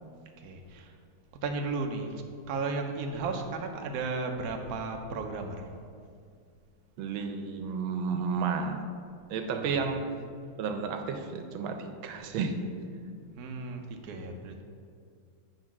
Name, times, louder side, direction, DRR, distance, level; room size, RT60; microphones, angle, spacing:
voice 1, 0.4-0.9 1.4-2.2 2.5-5.7 9.5-9.8 13.4-14.6, right 3 dB, 65° right, 4 dB, 1.0 m, -34 dB
voice 2, 7.0-8.8 9.3-10.1 10.6-12.6, right 5 dB, 90° right, 6 dB, 1.5 m, -32 dB
8.9 x 3.9 x 5.9 m, 2.2 s
omnidirectional pair, 2.1 m